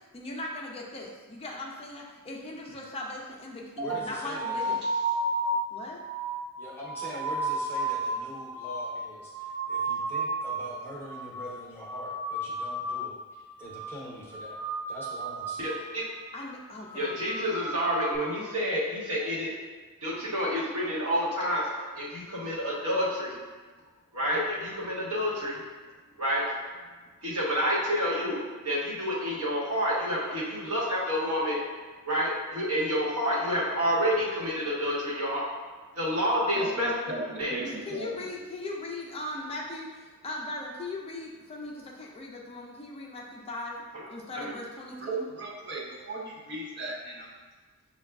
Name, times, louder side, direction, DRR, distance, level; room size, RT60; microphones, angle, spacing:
voice 1, 0.1-4.8 5.7-6.0 16.3-17.2 37.6-43.8 44.1-45.3, left 2 dB, 25° left, -2 dB, 0.4 m, -39 dB
voice 2, 3.8-4.8 6.5-15.6, equal, 10° left, -5 dB, 0.7 m, -43 dB
sound 1, 3.8-10.8 11.0-11.5 11.8-13.3 13.5-14.0 14.3-15.8 16.1-16.5 16.8-18.2, right 2 dB, 25° right, 0.8 m, -33 dB
voice 3, 15.6-16.1 16.9-19.5 20.0-21.7 21.9-23.4 24.1-25.6 26.2-26.4 27.2-31.6 32.1-35.4 35.9-36.9 37.4-37.5 44.3-44.5, equal, 65° right, -6 dB, 1.1 m, -28 dB
voice 4, 36.5-38.2 45.0-47.3, right 2 dB, 50° right, -3 dB, 0.5 m, -37 dB
6.6 x 2.2 x 2.3 m, 1.4 s
head